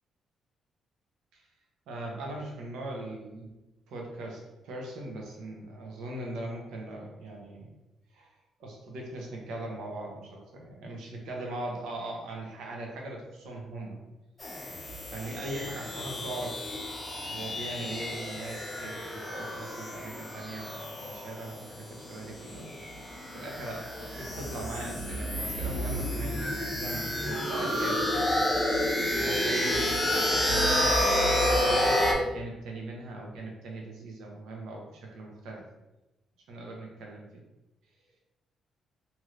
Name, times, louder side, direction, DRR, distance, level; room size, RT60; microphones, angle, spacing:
voice 1, 1.9-3.5 3.9-7.7 8.1-8.3 8.6-14.0 15.1-16.6 17.2-23.0 23.3-28.3 29.1-35.6 36.5-37.4, right 2 dB, 80° right, -1 dB, 0.8 m, -40 dB
sound 1, 14.4-32.1, left 1 dB, 20° left, 0.8 m, -30 dB
3.2 x 2.8 x 2.5 m, 1.0 s
cardioid pair, 90°, 0 cm